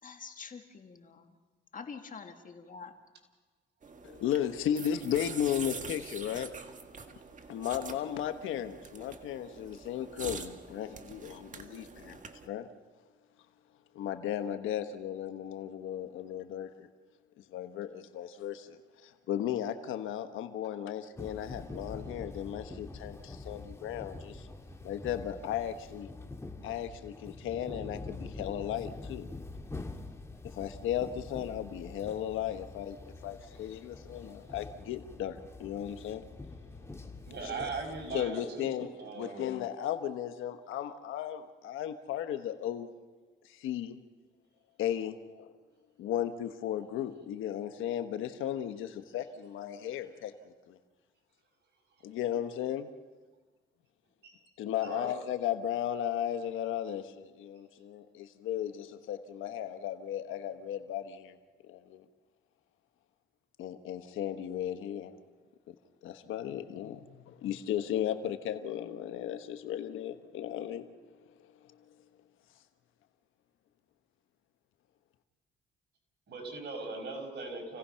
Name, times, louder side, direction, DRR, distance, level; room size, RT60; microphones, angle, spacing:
voice 1, 0.0-1.1 1.7-3.0, left 5 dB, 40° left, 5 dB, 2.0 m, -45 dB
sound 1, 3.8-12.5, right 5 dB, 40° right, 1.7 m, -45 dB
voice 2, 4.2-6.5 7.5-12.2 12.4-12.7 13.9-16.9 17.4-24.5 24.8-26.1 26.6-29.3 30.4-36.3 37.4-37.7 38.1-38.9 39.1-42.9 43.5-44.0 44.8-45.5 46.0-50.8 52.0-52.9 54.6-61.4 61.7-62.0 63.6-65.1 65.7-65.8 66.0-70.9, left 10 dB, 85° left, 9 dB, 1.3 m, -35 dB
sound 2, 21.2-38.2, left 3 dB, 15° left, 2.1 m, -45 dB
voice 3, 37.3-39.5 54.2-54.3 54.8-55.1 76.3-77.8, right 4 dB, 60° right, 2 dB, 5.5 m, -39 dB
29.0 x 17.0 x 5.8 m, 1.3 s
cardioid pair, 90°, 20 cm